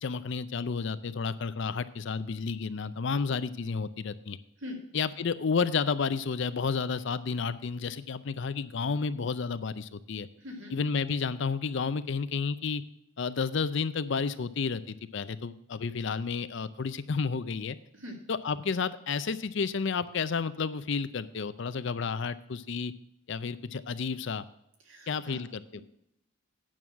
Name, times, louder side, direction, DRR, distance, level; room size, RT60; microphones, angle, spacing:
voice 1, 0.0-4.4 4.9-10.3 10.7-12.8 13.2-17.8 18.3-22.9 23.3-24.5 25.1-25.8, left 5 dB, 55° left, 14 dB, 0.5 m, -31 dB
voice 2, 10.4-10.8 17.9-18.2 24.9-25.4, left 1 dB, 65° right, 1 dB, 2.4 m, -42 dB
9.1 x 6.3 x 7.2 m, 0.77 s
head